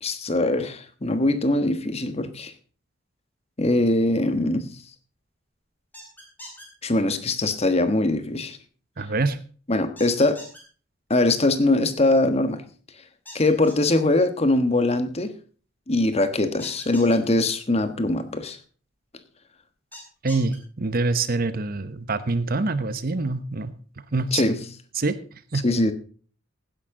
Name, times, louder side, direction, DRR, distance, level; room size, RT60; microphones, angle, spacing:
voice 1, 0.0-2.5 3.6-4.7 6.8-8.6 9.7-10.4 11.1-12.6 13.3-15.3 15.9-18.6 24.3-24.6 25.6-25.9, left 2 dB, 30° left, 1.3 m, -22 dB
sound 1, 5.9-6.7 10.0-10.6 13.3-13.9 16.6-17.2 19.9-20.6, left 1 dB, 10° left, 4.0 m, -42 dB
voice 2, 9.0-9.4 20.2-23.7 24.1-24.4 24.9-25.6, right 3 dB, 50° right, 0.9 m, -25 dB
15.5 x 10.5 x 3.8 m
head